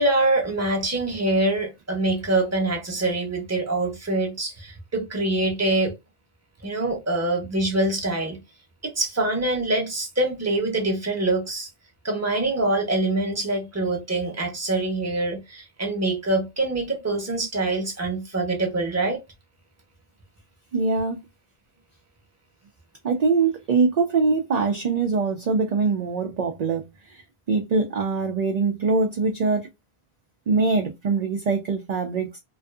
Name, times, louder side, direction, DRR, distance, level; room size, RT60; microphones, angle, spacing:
voice 1, 0.0-5.9 6.6-8.4 8.8-11.7 12.0-19.2, right 2 dB, 15° right, 0.7 m, -24 dB
voice 2, 20.7-21.2 23.0-26.8 27.1-27.2 27.5-29.7 30.5-32.4, right 4 dB, 55° right, 0.5 m, -23 dB
2.5 x 2.4 x 2.3 m
omnidirectional pair, 1.1 m